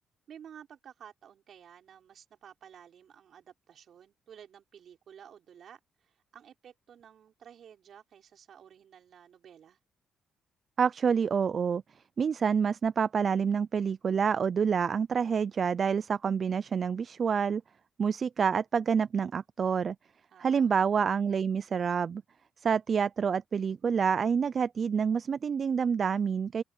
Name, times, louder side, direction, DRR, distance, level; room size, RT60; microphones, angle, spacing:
voice 1, 0.3-9.8 20.3-21.0, right 8 dB, 60° right, 5.7 m, -53 dB
voice 2, 10.8-11.8 12.2-17.6 18.0-20.0 20.4-22.2 22.6-26.6, right 6 dB, 45° right, 0.4 m, -27 dB
open air
cardioid pair, 100°, 0 cm